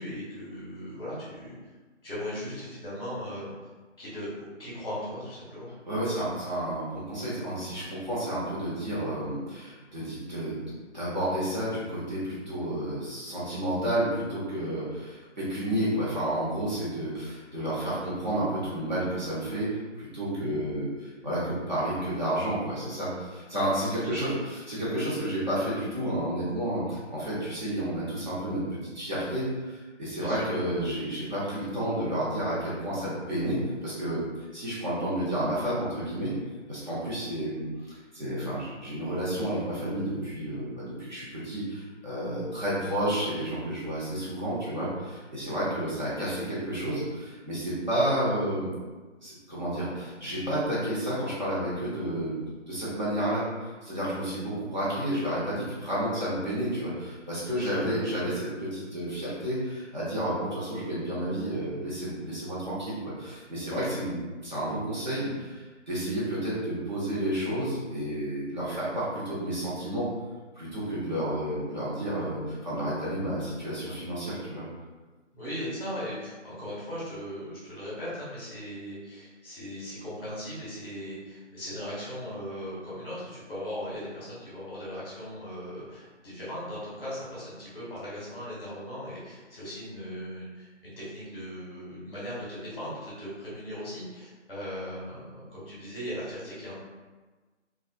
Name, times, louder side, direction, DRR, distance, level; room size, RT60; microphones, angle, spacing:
voice 1, 0.0-1.5 2.0-3.5 4.0-4.3 4.6-5.7 24.0-24.3 30.2-30.4 57.5-58.0 75.3-96.7, equal, 20° left, -9 dB, 1.1 m, -38 dB
voice 2, 5.9-10.6 10.9-36.3 36.7-48.7 49.2-52.4 52.6-70.1 70.6-74.6, right 1 dB, 35° right, -9 dB, 1.1 m, -31 dB
3.0 x 2.4 x 2.2 m, 1.3 s
figure-of-eight pair, 165°, 37 cm